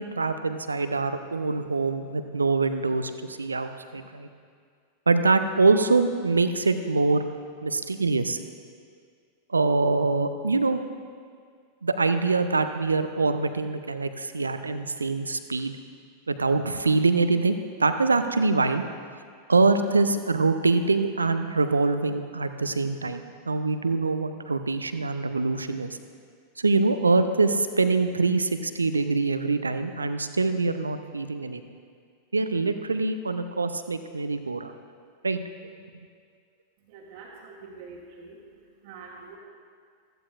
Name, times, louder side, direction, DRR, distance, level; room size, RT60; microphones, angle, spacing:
voice 1, 0.0-4.3 5.1-7.2 7.6-8.4 9.5-10.8 11.8-15.8 16.3-18.8 19.5-26.0 26.6-31.6 32.3-34.8 35.2-35.4, right 3 dB, 80° right, 9 dB, 0.6 m, -24 dB
voice 2, 36.8-39.4, right 4 dB, 50° right, -5 dB, 1.6 m, -45 dB
16.0 x 14.0 x 2.5 m, 2.1 s
figure-of-eight pair, 90°, 0 cm